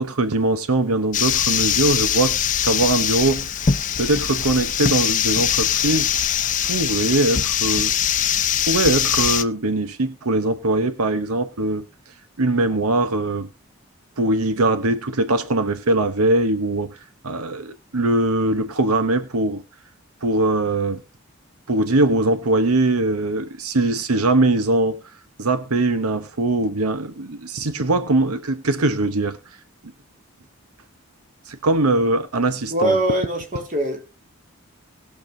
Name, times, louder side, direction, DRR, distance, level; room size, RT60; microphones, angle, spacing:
voice 1, 0.0-2.3 2.6-3.5 4.0-6.1 6.6-7.9 8.6-11.8 12.4-13.5 14.2-17.0 17.2-19.6 20.2-21.0 21.7-25.0 25.4-29.4 31.5-33.0, right 2 dB, 90° right, 1.0 m, -21 dB
sound 1, 1.1-9.4, left 9 dB, 35° left, 0.6 m, -22 dB
voice 2, 32.7-34.2, right 1 dB, 35° right, 2.5 m, -23 dB
20.0 x 7.1 x 2.8 m
head